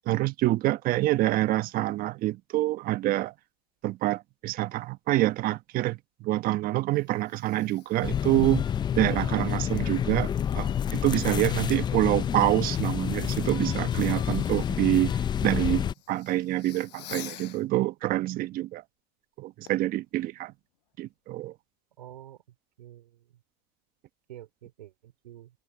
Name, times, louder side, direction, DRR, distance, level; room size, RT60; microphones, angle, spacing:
voice 1, 0.1-3.3 3.8-6.0 6.2-8.7 8.9-18.8 19.4-20.5 21.0-21.5, right 16 dB, 45° right, 1.3 m, -26 dB
Fireworks, 6.7-17.7 19.7-19.9 20.5-20.6, left 16 dB, 75° left, 6.0 m, -51 dB
sound 1, 8.0-15.9, left 9 dB, 20° left, 0.5 m, -28 dB
voice 2, 22.0-22.4 22.8-23.4 24.3-25.5, right 12 dB, 85° right, 5.0 m, -48 dB
hypercardioid pair, 115°, 21 cm